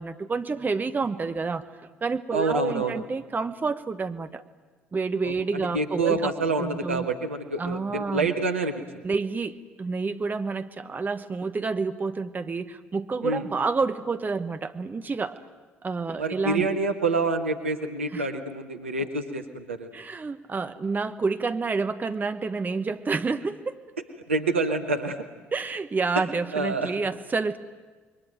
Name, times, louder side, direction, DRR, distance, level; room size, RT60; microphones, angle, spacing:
voice 1, 0.0-1.7 2.0-4.4 4.9-6.3 6.6-7.1 7.6-8.3 9.0-15.4 15.8-16.6 18.1-18.3 19.9-23.8 25.5-27.6, right 4 dB, 25° right, 10 dB, 1.3 m, -29 dB
voice 2, 2.3-3.0 5.2-8.8 13.2-13.5 16.2-19.9 24.3-25.2 26.1-26.2 26.5-26.9, right 3 dB, 85° right, 6 dB, 1.4 m, -27 dB
28.0 x 22.5 x 9.2 m, 1.4 s
figure-of-eight pair, 50°, 7 cm